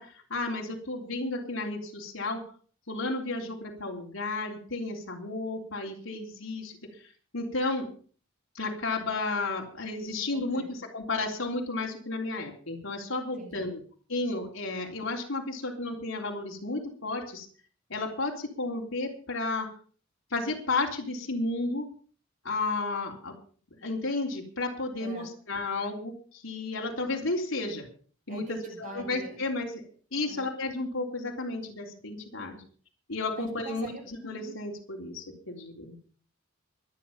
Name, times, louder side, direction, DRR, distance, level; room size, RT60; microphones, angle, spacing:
voice 1, 0.0-2.4 2.9-7.9 8.5-13.8 14.1-17.5 17.9-19.7 20.3-21.9 22.4-23.3 23.7-27.9 28.3-29.8 30.1-32.6 33.1-36.0, left 2 dB, 80° left, 0 dB, 3.6 m, -33 dB
voice 2, 10.3-10.8 13.4-13.7 25.0-25.3 28.3-29.4 30.2-30.5 33.3-34.0, right 2 dB, 40° right, 2 dB, 6.5 m, -43 dB
24.5 x 9.0 x 5.6 m, 0.44 s
head